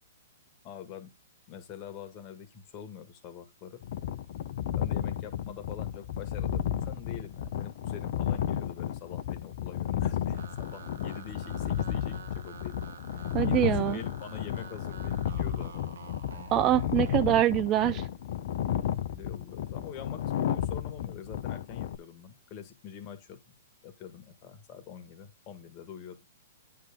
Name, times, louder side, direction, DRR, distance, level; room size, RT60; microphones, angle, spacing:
voice 1, 0.6-1.1 1.5-3.8 4.8-12.9 13.4-15.8 16.3-16.5 19.1-23.4 23.8-26.2, left 8 dB, 35° left, 1.9 m, -45 dB
sound 1, 3.8-22.0, left 10 dB, 55° left, 0.9 m, -32 dB
sound 2, 10.3-17.3, right 6 dB, 75° right, 1.3 m, -48 dB
voice 2, 13.3-14.0 16.5-18.1, right 12 dB, 30° right, 0.5 m, -24 dB
9.2 x 3.7 x 5.1 m
hypercardioid pair, 125°, 0 cm